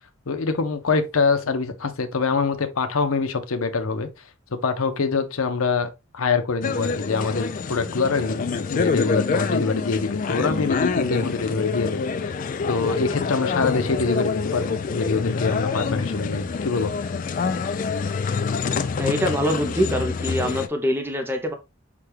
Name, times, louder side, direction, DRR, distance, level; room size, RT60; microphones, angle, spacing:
voice 1, 0.3-4.1 4.5-16.9, left 4 dB, 80° left, 0.7 m, -25 dB
sound 1, 6.6-20.7, left 5 dB, 40° left, 0.3 m, -26 dB
voice 2, 19.0-21.5, equal, 10° right, 0.5 m, -24 dB
5.9 x 2.3 x 3.3 m
head